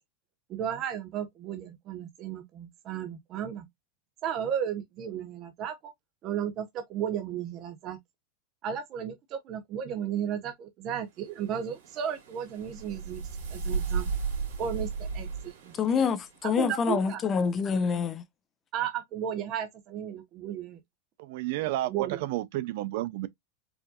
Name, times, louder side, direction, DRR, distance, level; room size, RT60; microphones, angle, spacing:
voice 1, 0.5-3.6 4.2-5.9 6.2-8.0 8.6-14.1 14.6-15.7 16.4-17.2 18.7-20.8 21.9-22.2, right 9 dB, 40° right, 0.8 m, -34 dB
sound 1, 11.2-16.5, right 5 dB, 85° right, 2.3 m, -35 dB
voice 2, 15.7-18.2, left 6 dB, 25° left, 0.5 m, -26 dB
voice 3, 21.2-23.3, right 16 dB, 65° right, 0.4 m, -31 dB
4.7 x 2.6 x 2.4 m
supercardioid pair, 130°, 0 cm